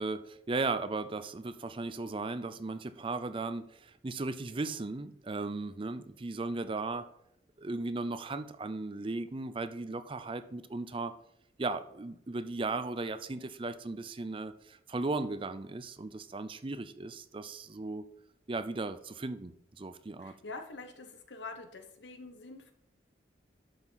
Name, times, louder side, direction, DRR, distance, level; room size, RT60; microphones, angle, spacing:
voice 1, 0.0-7.1 7.6-11.1 11.6-18.0 18.5-20.3, right 3 dB, 30° right, 11 dB, 0.5 m, -36 dB
voice 2, 20.2-22.7, left 3 dB, 75° left, 6 dB, 1.2 m, -45 dB
11.5 x 5.7 x 4.1 m, 0.74 s
head